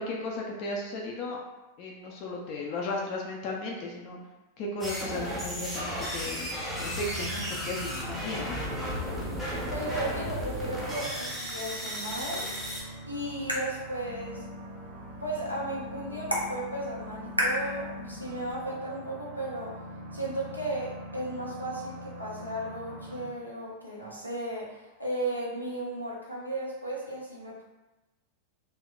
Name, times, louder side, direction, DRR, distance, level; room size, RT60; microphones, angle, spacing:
voice 1, 0.0-1.4 1.8-4.2 4.6-8.6, left 2 dB, 40° left, -2 dB, 0.4 m, -35 dB
sound 1, 4.8-12.8, equal, ahead, 0.7 m, -34 dB
sound 2, 6.8-23.3, equal, 40° right, 0.6 m, -43 dB
voice 2, 9.7-12.5 13.0-14.4 15.2-19.8 20.1-27.6, right 1 dB, 90° left, -5 dB, 0.6 m, -35 dB
sound 3, 12.6-18.6, equal, 90° right, 0.4 m, -36 dB
2.6 x 2.1 x 2.3 m, 1.1 s
figure-of-eight pair, 90°, 0 cm